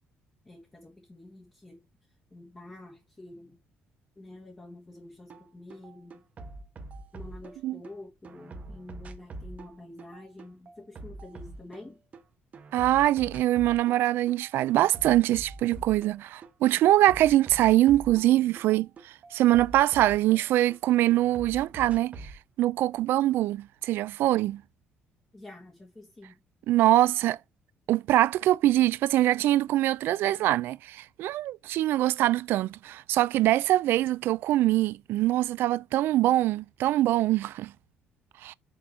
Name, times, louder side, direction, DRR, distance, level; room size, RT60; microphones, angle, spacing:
voice 1, 0.4-1.9 2.3-3.6 4.2-6.2 7.1-12.0 25.3-26.4, left 2 dB, 20° left, 1.6 m, -48 dB
sound 1, 5.3-5.4 5.7-7.9 8.2-12.2 12.5-14.0 14.3-16.5 16.8-20.8 21.1-22.4, right 2 dB, 40° right, 1.1 m, -44 dB
voice 2, 12.7-22.3 22.6-24.6 26.7-27.4 27.9-37.7 38.4-38.5, right 15 dB, 75° right, 0.3 m, -23 dB
6.1 x 3.5 x 5.8 m
cardioid pair, 120°, 4 cm